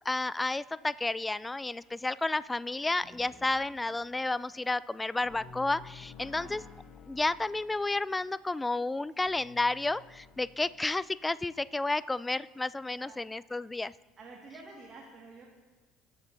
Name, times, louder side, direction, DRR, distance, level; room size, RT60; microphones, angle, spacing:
voice 1, 0.1-6.6 7.1-13.9, left 2 dB, 15° left, 19 dB, 0.3 m, -31 dB
sound 1, 3.0-11.2, left 5 dB, 50° left, 1.3 m, -54 dB
voice 2, 6.2-6.7 9.1-9.2 12.8-13.2 14.2-15.5, right 3 dB, 40° right, -1 dB, 1.8 m, -50 dB
16.0 x 8.0 x 2.7 m, 1.3 s
hypercardioid pair, 60°, 0 cm